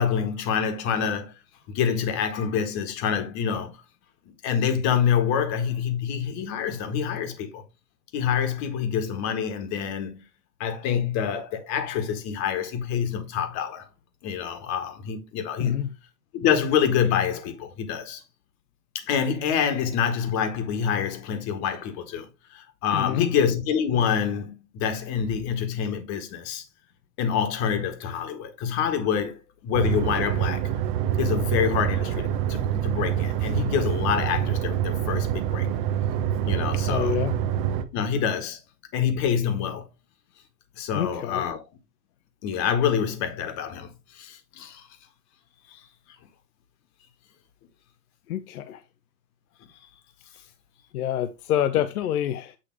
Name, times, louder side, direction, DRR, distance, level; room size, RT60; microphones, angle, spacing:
voice 1, 0.0-1.3 1.7-3.8 4.4-7.6 8.1-10.2 10.6-13.9 14.2-15.9 16.3-18.2 18.9-26.6 27.2-30.7 31.2-35.7 36.4-37.2 37.9-38.6 38.9-39.9 40.8-41.6 42.4-44.9 45.7-45.8, left 8 dB, 35° left, 1.6 m, -26 dB
voice 2, 15.6-15.9 22.9-23.3 36.9-37.4 40.9-41.5 48.3-48.8 50.9-52.6, left 10 dB, 60° left, 0.7 m, -27 dB
sound 1, 29.7-37.8, right 10 dB, 30° right, 0.8 m, -26 dB
8.8 x 3.2 x 4.6 m
hypercardioid pair, 125°, 50 cm